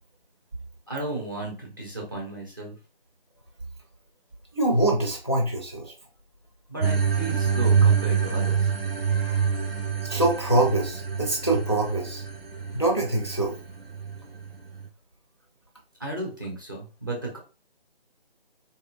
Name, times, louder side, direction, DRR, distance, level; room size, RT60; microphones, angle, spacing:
voice 1, 0.9-2.8 6.7-8.7 9.1-9.6 16.0-17.4, right 2 dB, 20° right, -2 dB, 0.7 m, -34 dB
voice 2, 4.5-5.9 10.1-12.2 12.7-13.6, right 2 dB, 30° left, -1 dB, 0.5 m, -24 dB
sound 1, 6.8-14.9, right 6 dB, 70° right, 0.6 m, -26 dB
3.9 x 2.7 x 2.4 m, 0.33 s
figure-of-eight pair, 155°, 31 cm